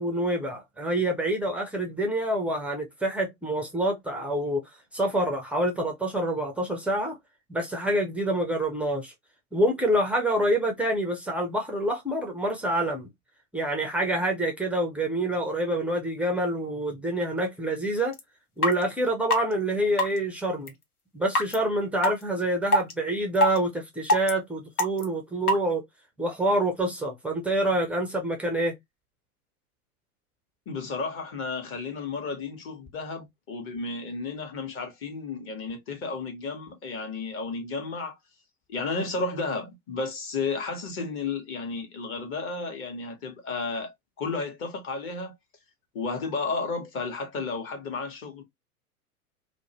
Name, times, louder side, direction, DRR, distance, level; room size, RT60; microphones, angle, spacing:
voice 1, 0.0-4.6 4.9-7.2 7.5-9.1 9.5-13.1 13.5-18.1 18.6-20.7 21.1-25.8 26.2-28.7, right 1 dB, 5° right, 0.4 m, -27 dB
sound 1, 18.1-18.2 18.6-18.7 19.3-19.4 20.0-20.2 20.7-20.8 21.3-21.5 22.0-22.1 22.7-22.9 23.3-23.6 24.1-24.3 24.8-25.0 25.5-25.6, left 1 dB, 85° left, 0.8 m, -21 dB
voice 2, 30.7-38.2 38.7-45.3 45.9-48.4, left 4 dB, 30° left, 1.0 m, -33 dB
2.5 x 2.1 x 2.8 m
figure-of-eight pair, 90°, 43 cm